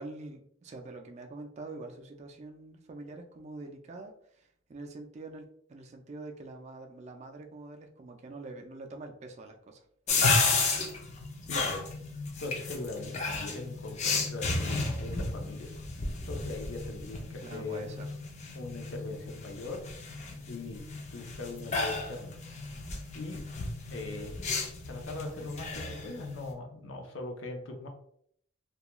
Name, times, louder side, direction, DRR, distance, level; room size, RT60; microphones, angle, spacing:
voice 1, 0.0-10.6 17.4-18.1, right 2 dB, 35° right, 3 dB, 0.3 m, -45 dB
sound 1, 10.1-26.5, left 3 dB, 35° left, 0.4 m, -33 dB
voice 2, 11.5-11.8 12.4-15.7 16.2-17.8 18.5-19.8 20.5-22.4 23.1-23.4 23.9-24.4 24.9-27.9, left 3 dB, 85° left, 3 dB, 0.6 m, -40 dB
2.3 x 2.2 x 2.9 m, 0.67 s
head